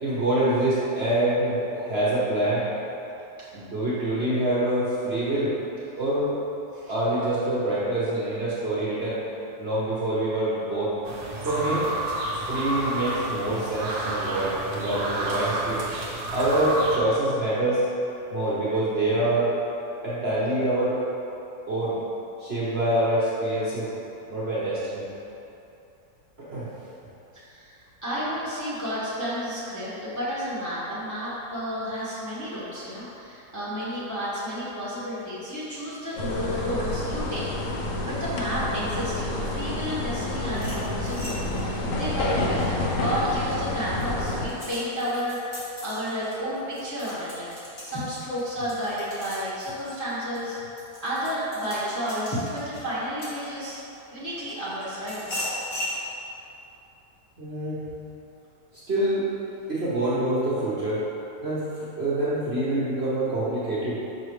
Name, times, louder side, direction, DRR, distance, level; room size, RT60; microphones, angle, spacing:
voice 1, 0.0-2.7 3.5-5.5 6.0-6.4 6.9-9.2 9.6-10.9 11.4-11.9 12.5-15.8 16.3-17.8 18.3-19.5 20.0-21.0 21.7-22.0 22.4-23.9 24.3-25.1 26.5-26.7 57.4-57.8 58.9-59.2 59.7-61.0 61.4-61.7 62.0-64.0, right 1 dB, 45° right, -9 dB, 1.1 m, -25 dB
sound 1, 11.0-17.0, right 1 dB, 85° right, 1.4 m, -30 dB
voice 2, 27.3-50.6 51.0-53.8 54.1-55.2, equal, 10° left, -9 dB, 1.1 m, -31 dB
sound 2, 36.2-44.5, left 1 dB, 60° left, 1.0 m, -29 dB
sound 3, 40.5-43.3 43.8-53.9 54.5-56.0, left 1 dB, 40° left, 1.7 m, -39 dB
6.0 x 5.4 x 3.2 m, 2.9 s
omnidirectional pair, 1.8 m